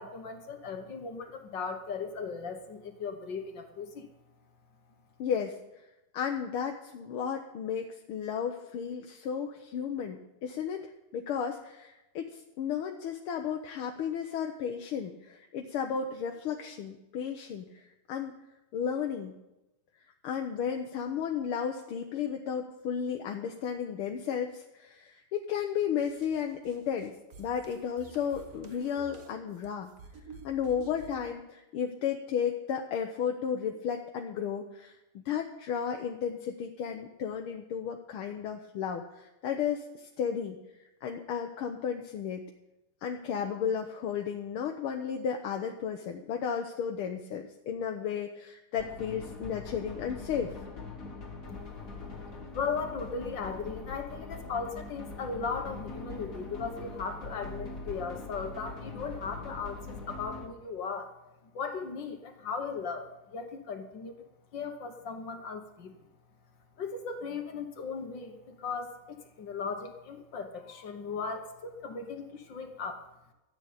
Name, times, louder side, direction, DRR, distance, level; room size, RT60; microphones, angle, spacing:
voice 1, 0.0-4.1 51.5-51.6 52.5-61.1 61.5-64.2 64.5-65.9 66.8-73.0, left 5 dB, 60° left, 6 dB, 1.8 m, -37 dB
voice 2, 5.2-5.6 6.1-18.3 18.7-19.3 20.2-27.1 27.4-29.9 30.4-35.0 35.3-40.6 41.0-42.4 43.0-50.5, left 7 dB, 80° left, 3 dB, 1.8 m, -33 dB
sound 1, 26.0-31.3, right 4 dB, 45° right, 1.5 m, -50 dB
sound 2, 48.8-60.5, left 3 dB, 40° left, 1.9 m, -42 dB
13.5 x 8.0 x 8.7 m, 0.99 s
omnidirectional pair, 2.4 m